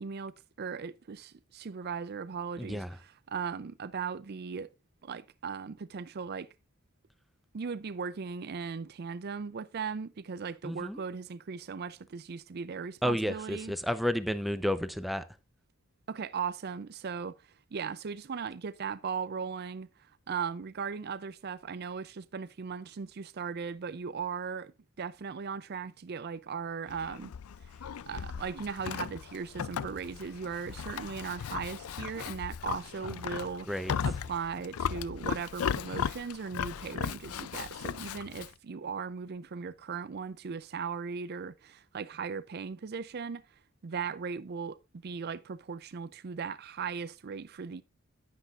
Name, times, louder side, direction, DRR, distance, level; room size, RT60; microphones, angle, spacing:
voice 1, 0.0-4.7 5.0-6.5 7.5-13.7 16.1-27.3 27.6-27.8 28.1-33.7 34.0-47.8, right 6 dB, 45° right, 0.4 m, -38 dB
voice 2, 2.6-3.0 10.6-11.0 13.0-15.2 33.7-33.9, equal, ahead, 0.7 m, -31 dB
Livestock farm animals working animals, 26.9-38.5, left 7 dB, 85° left, 0.4 m, -37 dB
10.0 x 9.9 x 2.5 m
head